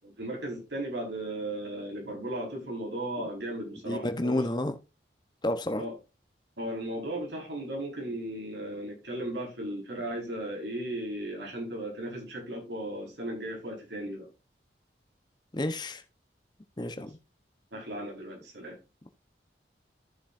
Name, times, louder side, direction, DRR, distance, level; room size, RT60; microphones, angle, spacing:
voice 1, 0.0-4.6 5.8-5.9 6.6-14.3 17.0-17.1 17.7-18.8, right 1 dB, 80° right, 5.0 m, -36 dB
voice 2, 3.9-4.7 5.4-5.8 15.5-16.0 16.8-17.2, left 1 dB, 25° left, 1.0 m, -30 dB
14.0 x 7.1 x 2.6 m
head